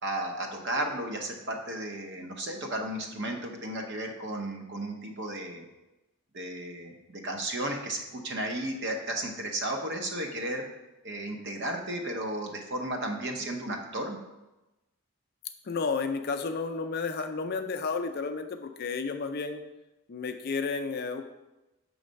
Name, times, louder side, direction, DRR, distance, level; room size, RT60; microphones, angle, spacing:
voice 1, 0.0-5.7 6.3-10.6 11.0-14.2, right 1 dB, 50° right, 3 dB, 0.8 m, -34 dB
voice 2, 15.6-19.6 20.1-21.2, left 4 dB, 45° left, 6 dB, 0.4 m, -32 dB
6.2 x 3.2 x 5.1 m, 1.0 s
head